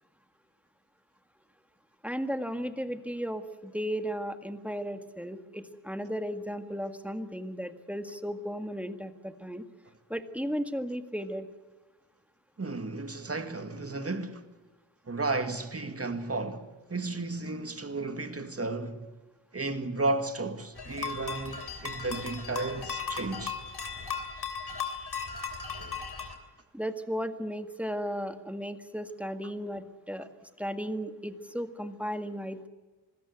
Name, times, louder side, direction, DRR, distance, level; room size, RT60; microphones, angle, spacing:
voice 1, 2.0-9.6 10.1-11.5 26.7-30.3 30.6-32.7, equal, 5° right, 1.8 m, -35 dB
voice 2, 12.6-14.4 15.1-19.1 19.5-23.6, right 3 dB, 30° right, 2.1 m, -33 dB
sound 1, 20.8-26.4, left 5 dB, 55° left, 3.3 m, -37 dB
26.0 x 16.5 x 8.1 m
cardioid pair, 65°, 46 cm